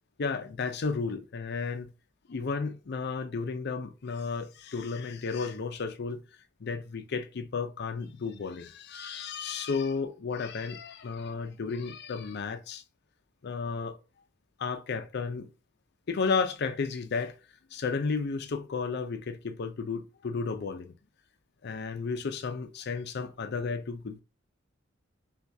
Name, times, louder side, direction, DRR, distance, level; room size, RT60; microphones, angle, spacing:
voice 1, 0.2-1.9 2.3-6.2 6.6-12.8 13.4-14.0 14.6-15.5 16.1-17.4 17.7-21.0 21.6-24.2, left 4 dB, 55° left, 0.5 m, -33 dB
5.9 x 2.3 x 2.7 m
head